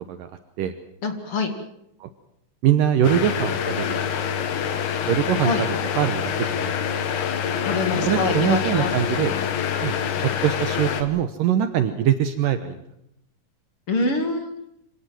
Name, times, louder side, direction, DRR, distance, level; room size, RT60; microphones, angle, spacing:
voice 1, 1.0-1.5 5.4-5.6 7.6-8.9 13.9-14.5, left 3 dB, 40° left, 7 dB, 2.6 m, -25 dB
voice 2, 2.6-4.2 5.1-5.7 6.0-6.8 8.1-9.4 9.8-9.9 10.2-12.8, right 10 dB, 70° right, 9 dB, 2.5 m, -23 dB
sound 1, 3.0-11.0, left 8 dB, 60° left, 2.6 m, -26 dB
Bass guitar, 11.4-11.7, left 1 dB, 50° right, 8.8 m, -40 dB
25.5 x 18.0 x 7.6 m, 0.78 s
omnidirectional pair, 4.4 m